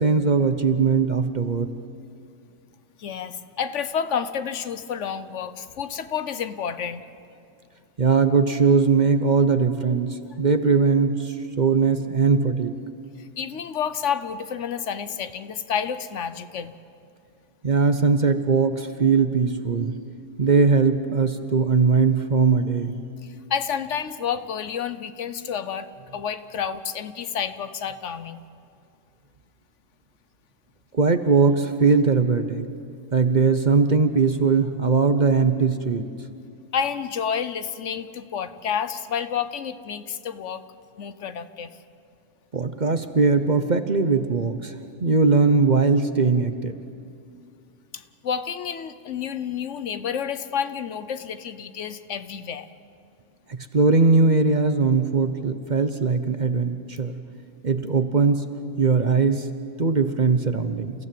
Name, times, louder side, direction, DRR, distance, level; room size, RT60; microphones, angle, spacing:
voice 1, 0.0-1.7 8.0-12.7 17.6-20.0 20.4-22.9 30.9-32.7 33.1-36.0 42.5-44.7 45.0-46.7 53.5-57.2 57.6-58.4 58.8-59.4 59.8-60.9, right 4 dB, 40° right, 9 dB, 0.9 m, -20 dB
voice 2, 3.0-7.0 13.2-16.7 23.2-28.4 36.7-40.6 41.0-41.8 47.9-52.7, left 7 dB, 70° left, 12 dB, 1.2 m, -30 dB
29.5 x 16.0 x 7.6 m, 2.4 s
omnidirectional pair, 1.3 m